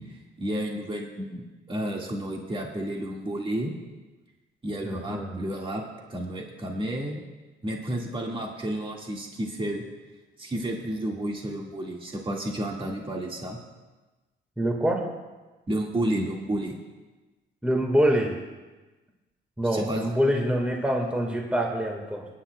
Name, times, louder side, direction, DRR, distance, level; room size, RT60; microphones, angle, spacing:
voice 1, 0.4-1.4 1.7-3.7 4.6-5.8 6.1-7.2 7.6-9.8 10.4-13.6 15.7-16.7 19.7-20.1, right 1 dB, 25° right, -1 dB, 1.8 m, -31 dB
voice 2, 4.8-5.4 14.6-15.0 17.6-18.3 19.6-22.3, equal, 5° right, 1 dB, 1.7 m, -25 dB
22.5 x 10.0 x 2.3 m, 1.2 s
cardioid pair, 90°, 20 cm